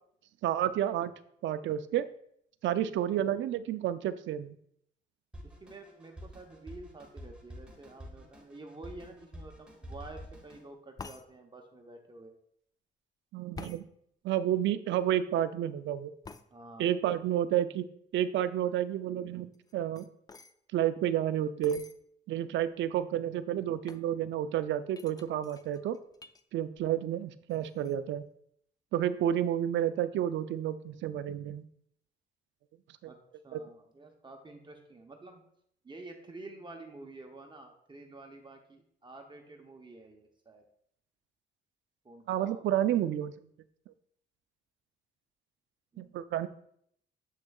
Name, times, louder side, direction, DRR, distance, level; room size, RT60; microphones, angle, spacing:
voice 1, 0.4-1.1 1.4-2.1 2.6-4.5 13.3-13.9 14.2-16.1 16.8-17.9 18.1-20.1 20.7-21.8 22.3-26.0 26.5-28.2 28.9-31.7 33.5-33.6 42.3-43.3 46.0-46.5, right 11 dB, 70° right, 13 dB, 0.4 m, -30 dB
Drum kit, 5.3-10.7, equal, 5° right, 1.5 m, -48 dB
voice 2, 5.4-12.3 16.5-16.9 33.0-33.2 33.4-35.4 35.8-40.6 42.0-42.8 45.9-46.2, right 2 dB, 25° right, 3 dB, 0.8 m, -49 dB
sound 1, 11.0-11.3 13.5-13.8 16.2-16.5 19.5-20.5 21.6-22.0 22.7-22.8 22.9-23.3 23.9-24.1 24.9-26.4 26.8-27.2 27.5-27.9, left 4 dB, 20° left, 0.3 m, -48 dB
7.3 x 6.2 x 2.3 m, 0.69 s
cardioid pair, 90°, 20 cm